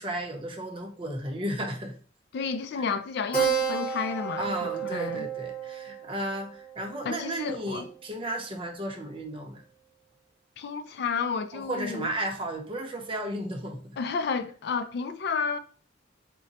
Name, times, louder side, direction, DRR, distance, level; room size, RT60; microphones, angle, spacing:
voice 1, 0.0-1.9 4.4-9.6 11.5-14.0, right 1 dB, 30° right, 0.7 m, -34 dB
voice 2, 2.3-4.5 4.8-5.3 7.0-7.9 10.6-12.1 14.0-15.6, left 5 dB, 60° left, 0.3 m, -31 dB
Keyboard (musical), 3.3-8.3, right 6 dB, 5° left, 0.9 m, -32 dB
3.7 x 2.2 x 4.0 m
head